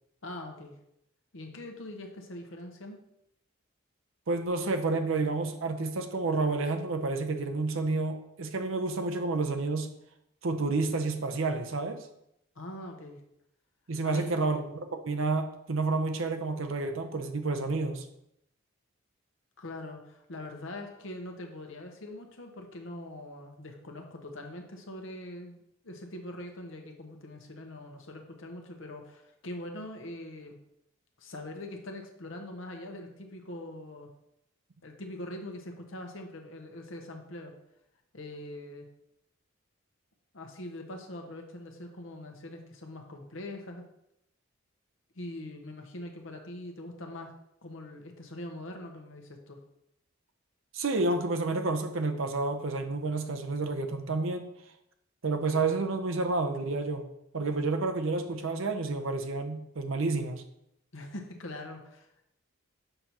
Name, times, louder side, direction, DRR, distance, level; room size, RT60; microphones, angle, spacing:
voice 1, 0.2-0.7 1.3-3.0 12.6-13.2 14.0-14.4 19.6-30.6 31.2-34.1 34.8-37.5 38.1-38.9 40.3-43.8 45.1-47.3 47.6-49.6 60.9-62.3, left 1 dB, 65° left, 3 dB, 0.9 m, -42 dB
voice 2, 4.3-9.9 10.4-12.1 13.9-18.1 50.7-54.5 55.2-57.0 57.3-60.4, right 3 dB, 70° right, 6 dB, 0.7 m, -30 dB
6.7 x 5.4 x 3.0 m, 0.80 s
head